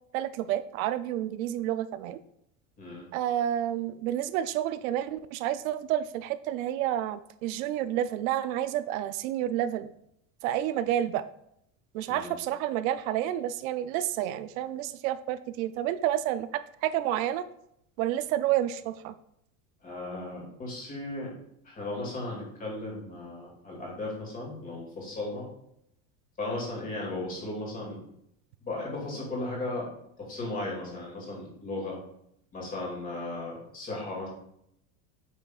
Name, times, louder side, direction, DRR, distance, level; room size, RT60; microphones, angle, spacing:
voice 1, 0.1-2.2 3.1-9.9 10.4-11.2 11.9-17.4 18.0-19.1, right 12 dB, 80° right, 13 dB, 0.6 m, -30 dB
voice 2, 19.8-21.3 21.6-25.5 26.4-28.0 28.6-29.9 30.2-32.0 32.5-34.3, left 2 dB, 20° left, -3 dB, 2.4 m, -36 dB
8.3 x 6.0 x 2.4 m, 0.74 s
cardioid pair, 175°, 41 cm